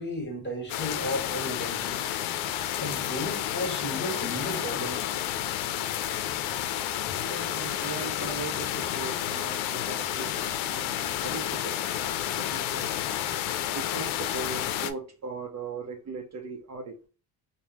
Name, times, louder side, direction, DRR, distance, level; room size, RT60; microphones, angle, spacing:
voice 1, 0.0-2.1 2.8-5.2, left 1 dB, 25° left, 1.6 m, -34 dB
sound 1, 0.7-14.9, left 11 dB, 80° left, 0.6 m, -30 dB
voice 2, 7.2-11.8 12.3-13.0 13.6-17.1, right 4 dB, 35° right, 0.7 m, -39 dB
3.4 x 2.2 x 2.8 m
supercardioid pair, 85°, 46 cm